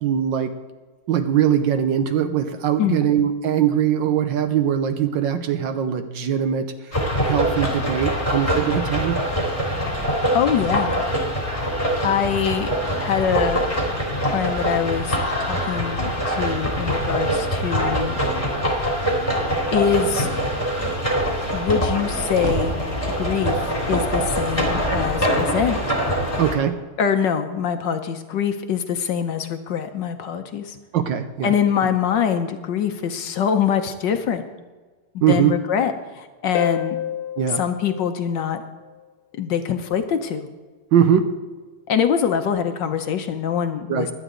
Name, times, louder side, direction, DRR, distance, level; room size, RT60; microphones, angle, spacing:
voice 1, 0.0-0.5 1.1-9.2 26.4-26.8 30.9-31.5 35.2-35.6 37.4-37.6 40.9-41.3 43.9-44.1, right 9 dB, 65° right, 9 dB, 1.3 m, -21 dB
sound 1, 6.9-26.5, equal, 15° left, 2.9 m, -24 dB
voice 2, 10.3-11.0 12.0-12.7 13.0-13.6 14.3-18.2 19.7-20.3 21.5-22.8 23.2-25.8 27.0-30.8 31.4-34.4 35.1-37.0 37.6-38.6 39.4-40.5 41.9-44.1, left 8 dB, 65° left, 7 dB, 1.3 m, -24 dB
sound 2, 22.3-23.5, right 7 dB, 90° right, 0.6 m, -34 dB
Harp, 36.5-39.0 42.5-42.6, left 11 dB, 80° left, 1.5 m, -29 dB
17.0 x 11.0 x 3.8 m, 1.4 s
omnidirectional pair, 2.4 m